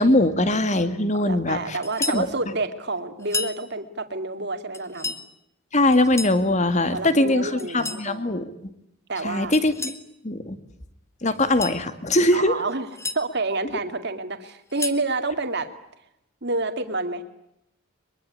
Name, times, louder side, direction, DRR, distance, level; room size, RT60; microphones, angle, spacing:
voice 1, 0.0-1.8 2.1-2.3 5.7-8.5 9.2-9.9 10.2-10.6 11.2-12.5, left 1 dB, 35° left, 11 dB, 2.2 m, -21 dB
voice 2, 1.1-5.2 6.9-8.3 9.1-9.5 12.3-12.9 13.1-15.7 16.4-17.2, right 3 dB, 50° right, 9 dB, 2.4 m, -29 dB
sound 1, 1.8-2.3 3.2-3.6 4.7-5.2 5.9-6.4 7.6-8.1 9.5-10.0 11.4-11.8 12.7-13.2 14.5-15.1, left 3 dB, 10° left, 1.5 m, -32 dB
24.0 x 23.0 x 9.9 m, 0.82 s
head